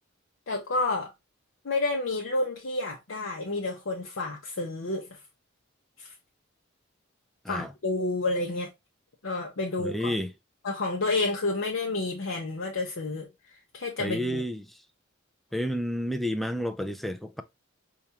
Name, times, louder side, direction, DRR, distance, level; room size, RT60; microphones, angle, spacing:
voice 1, 0.5-1.1 1.6-5.1 6.0-6.1 7.5-8.7 9.2-10.1 10.6-13.3 13.7-14.4, left 2 dB, 70° left, 0.7 m, -30 dB
voice 2, 9.8-10.3 14.0-14.7 15.5-17.4, equal, ahead, 0.3 m, -30 dB
4.6 x 2.4 x 2.7 m
head